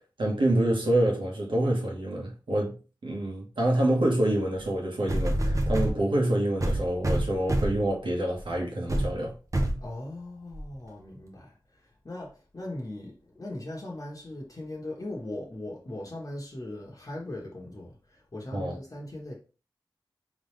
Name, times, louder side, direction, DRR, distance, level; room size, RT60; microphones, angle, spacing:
voice 1, 0.2-9.3 18.5-18.8, right 1 dB, 80° right, 1.4 m, -27 dB
sound 1, 4.6-4.7 5.1-6.0 6.6-7.9 8.4-8.5 8.9-9.1 9.5-9.8 10.5-10.6, right 1 dB, 40° right, 0.9 m, -26 dB
voice 2, 9.8-19.3, left 1 dB, 45° left, 1.1 m, -39 dB
3.8 x 3.2 x 3.2 m
cardioid pair, 45°, 8 cm